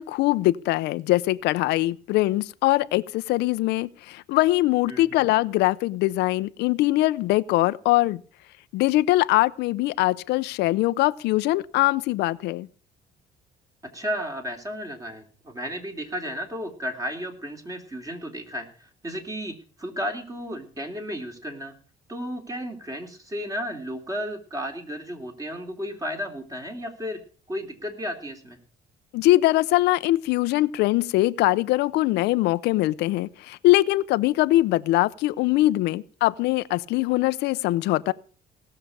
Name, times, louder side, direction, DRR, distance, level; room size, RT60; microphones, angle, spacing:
voice 1, 0.0-8.2 8.7-12.7 29.1-38.1, left 17 dB, 85° left, 0.6 m, -22 dB
voice 2, 4.9-5.2 13.9-21.7 22.1-27.2 27.5-28.6, equal, 20° right, 3.3 m, -33 dB
18.5 x 6.7 x 7.2 m
cardioid pair, 110°, 17 cm